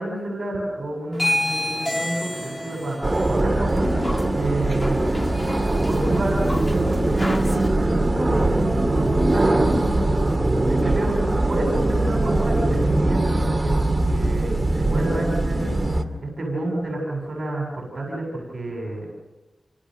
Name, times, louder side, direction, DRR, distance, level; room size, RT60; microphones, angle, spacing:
voice 1, 0.0-3.9 4.3-10.2 10.6-19.1, right 1 dB, 50° right, 0 dB, 7.5 m, -30 dB
sound 1, 1.1-7.7, left 1 dB, 15° left, 2.4 m, -29 dB
sound 2, 3.0-16.0, right 2 dB, 25° right, 2.3 m, -21 dB
29.5 x 25.5 x 6.6 m, 1.1 s
wide cardioid pair, 90°, 0 cm